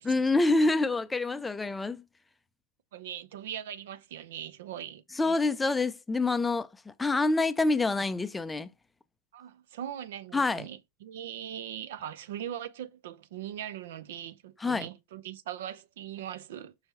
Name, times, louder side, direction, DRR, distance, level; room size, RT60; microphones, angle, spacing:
voice 1, 0.0-2.0 5.2-8.7 10.3-10.6 14.6-14.9, left 3 dB, 10° left, 0.5 m, -27 dB
voice 2, 2.9-5.3 9.3-16.7, right 10 dB, 55° right, 0.6 m, -40 dB
5.6 x 4.4 x 4.2 m
figure-of-eight pair, 90°, 0 cm